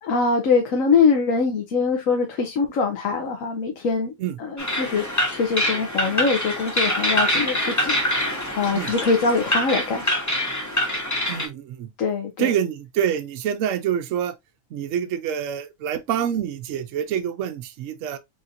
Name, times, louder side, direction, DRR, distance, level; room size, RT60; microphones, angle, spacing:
voice 1, 0.0-4.1 4.4-8.3 8.5-10.0 12.0-12.5, left 4 dB, 85° left, 1.2 m, -23 dB
sound 1, 4.6-11.5, left 1 dB, 15° left, 0.8 m, -25 dB
voice 2, 11.3-11.9 12.4-14.3 14.7-18.2, right 9 dB, 75° right, 0.9 m, -26 dB
4.1 x 3.7 x 2.5 m
omnidirectional pair, 1.3 m